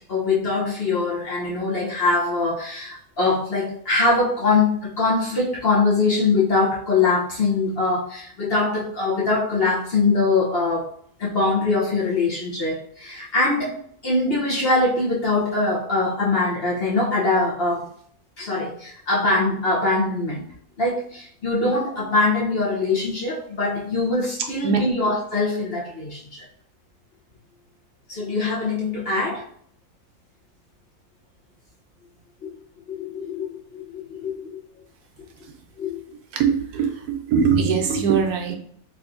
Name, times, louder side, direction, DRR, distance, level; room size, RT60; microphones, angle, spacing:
voice 1, 0.1-10.9 11.2-17.9 18.4-20.4 20.8-26.4 28.1-29.5 32.4-32.5 32.9-34.6 35.8-36.0, left 3 dB, 50° left, -5 dB, 0.8 m, -23 dB
voice 2, 36.3-38.5, right 6 dB, 80° right, 3 dB, 1.2 m, -21 dB
3.4 x 2.7 x 2.5 m, 0.63 s
omnidirectional pair, 1.6 m